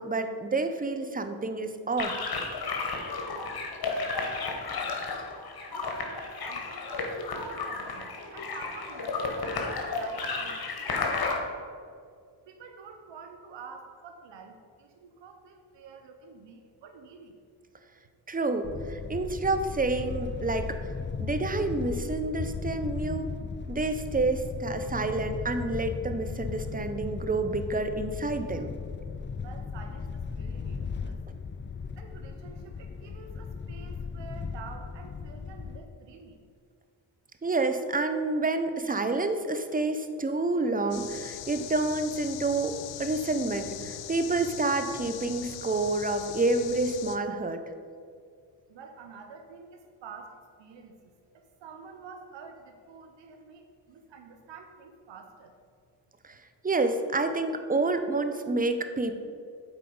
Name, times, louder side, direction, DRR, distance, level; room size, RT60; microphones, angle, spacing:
voice 1, 0.0-2.1 18.3-20.8 21.2-23.3 23.7-28.7 37.4-47.6 56.2-56.4 56.6-59.2, right 3 dB, 20° right, 8 dB, 0.7 m, -28 dB
sound 1, 2.0-11.4, left 4 dB, 55° left, 1.3 m, -33 dB
voice 2, 5.7-11.7 12.5-17.4 29.3-31.2 32.0-36.4 48.7-55.6, right 5 dB, 75° right, 5 dB, 0.8 m, -48 dB
sound 2, 18.6-35.8, left 5 dB, 25° left, 0.4 m, -36 dB
sound 3, 40.9-47.2, left 10 dB, 85° left, 0.5 m, -41 dB
7.8 x 4.5 x 5.4 m, 2.1 s
cardioid pair, 55°, 43 cm